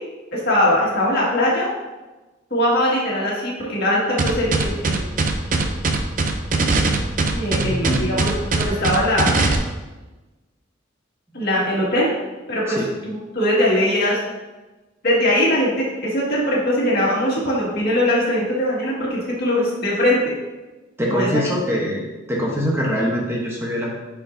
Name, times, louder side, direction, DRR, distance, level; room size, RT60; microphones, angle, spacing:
voice 1, 0.3-1.7 2.5-5.0 5.6-5.7 7.3-8.3 8.6-9.4 11.3-12.1 12.5-14.2 15.0-20.3 21.1-21.4, left 1 dB, 55° left, -5 dB, 1.9 m, -21 dB
sound 1, 4.2-9.6, right 3 dB, 45° right, 0.6 m, -20 dB
voice 2, 7.6-8.0 12.7-12.9 21.0-22.0 22.3-23.9, equal, 15° right, -3 dB, 0.9 m, -23 dB
9.0 x 4.6 x 2.7 m, 1.2 s
head